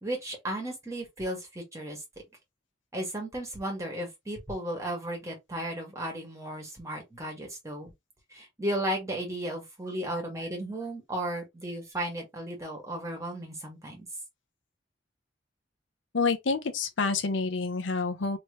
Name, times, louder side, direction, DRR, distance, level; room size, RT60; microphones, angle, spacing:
voice 1, 0.0-2.0 2.9-7.9 8.3-14.1, right 1 dB, 15° right, 1.5 m, -35 dB
voice 2, 16.1-18.4, left 4 dB, 80° left, 0.7 m, -28 dB
3.1 x 3.0 x 3.1 m
head